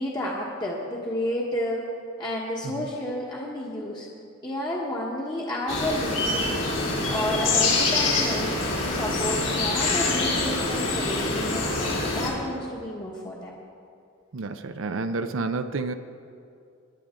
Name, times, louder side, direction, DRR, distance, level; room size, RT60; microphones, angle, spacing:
voice 1, 0.0-1.8 2.2-4.1 4.4-6.6 7.1-8.5 8.9-13.5, left 1 dB, 20° left, -4 dB, 1.3 m, -31 dB
sound 1, 5.7-12.3, left 3 dB, 70° left, 3.5 m, -25 dB
voice 2, 14.3-15.9, right 3 dB, 70° right, 8 dB, 0.6 m, -30 dB
21.5 x 10.5 x 3.8 m, 2.5 s
head